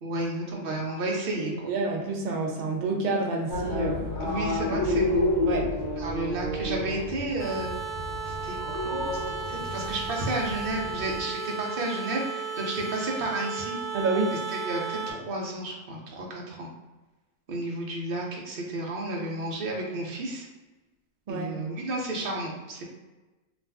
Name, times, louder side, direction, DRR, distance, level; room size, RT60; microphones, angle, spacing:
voice 1, 0.0-1.5 4.2-5.3 6.0-7.7 8.2-13.8 14.3-16.7 17.5-20.5 21.3-22.8, right 2 dB, 55° right, -2 dB, 0.8 m, -32 dB
voice 2, 1.7-4.1 5.5-5.7 13.9-14.3 21.3-21.5, right 3 dB, 85° right, 0 dB, 0.4 m, -28 dB
sound 1, 3.5-11.2, left 1 dB, 60° left, 0.9 m, -30 dB
sound 2, 7.4-15.1, right 5 dB, 30° left, 1.0 m, -34 dB
2.5 x 2.4 x 3.4 m, 1.1 s
omnidirectional pair, 1.4 m